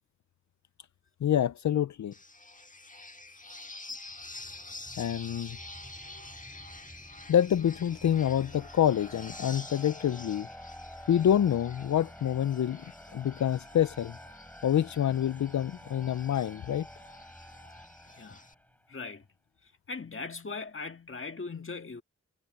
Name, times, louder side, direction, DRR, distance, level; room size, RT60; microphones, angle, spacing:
voice 1, 1.2-2.1 4.9-5.6 7.3-10.5 11.1-14.2 14.6-16.9, left 10 dB, 75° left, 0.5 m, -27 dB
sound 1, 2.1-18.5, left 2 dB, 25° left, 1.8 m, -48 dB
sound 2, 4.0-9.0, right 1 dB, 20° right, 3.7 m, -55 dB
sound 3, 6.1-18.9, equal, 5° left, 7.1 m, -50 dB
voice 2, 18.1-18.4 18.9-19.2 19.9-22.0, left 4 dB, 45° left, 1.8 m, -39 dB
cardioid pair, 60°, 29 cm